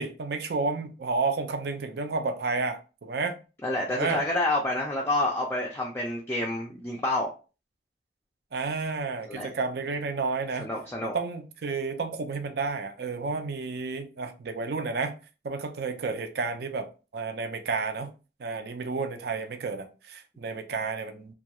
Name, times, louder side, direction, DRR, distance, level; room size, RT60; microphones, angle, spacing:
voice 1, 0.0-3.4 3.9-4.2 8.5-10.7 11.0-15.1 15.4-18.1 18.4-21.3, right 4 dB, 60° right, 0.4 m, -31 dB
voice 2, 3.6-7.3 9.3-9.5 10.6-11.1, left 2 dB, 15° left, 0.4 m, -28 dB
2.3 x 2.2 x 2.8 m
head